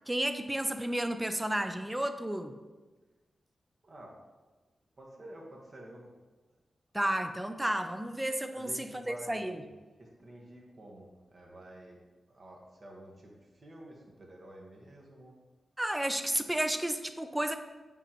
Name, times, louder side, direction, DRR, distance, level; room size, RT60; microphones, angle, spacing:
voice 1, 0.1-2.5 6.9-9.6 15.8-17.6, right 1 dB, 10° right, 9 dB, 0.5 m, -32 dB
voice 2, 3.8-4.2 5.0-6.1 8.5-9.7 10.0-12.0 12.3-15.3, right 1 dB, 50° right, -2 dB, 1.4 m, -50 dB
9.0 x 3.9 x 3.0 m, 1.2 s
cardioid pair, 75°, 0 cm